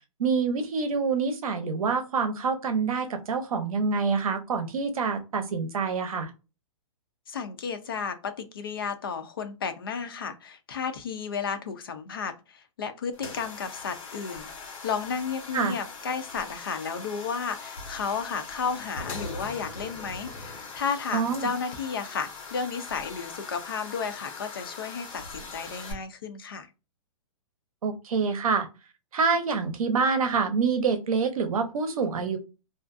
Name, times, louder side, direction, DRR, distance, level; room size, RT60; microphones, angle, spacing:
voice 1, 0.2-6.3 15.5-15.7 21.1-21.5 27.8-28.7 29.1-32.4, right 5 dB, 80° right, 7 dB, 0.7 m, -26 dB
voice 2, 7.3-26.7, left 6 dB, 40° left, 8 dB, 0.4 m, -33 dB
sound 1, 13.1-25.9, left 4 dB, 70° left, 1.2 m, -41 dB
2.4 x 2.2 x 2.4 m, 0.30 s
hypercardioid pair, 180°, 18 cm